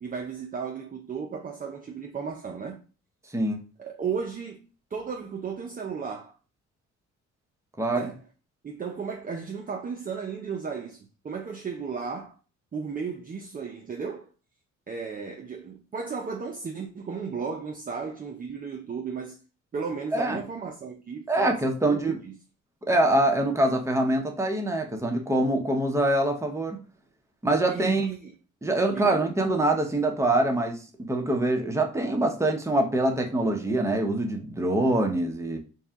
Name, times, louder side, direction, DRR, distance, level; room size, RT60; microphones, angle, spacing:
voice 1, 0.0-2.8 3.8-6.4 7.9-8.2 8.6-12.3 12.7-14.3 14.9-19.4 19.7-22.3 27.7-28.3 28.9-29.2, right 5 dB, 30° right, 0.5 m, -34 dB
voice 2, 21.3-22.2 22.9-26.8 27.4-28.1 28.6-35.6, right 1 dB, 10° right, 0.9 m, -24 dB
4.2 x 2.3 x 3.6 m
cardioid pair, 90°, 30 cm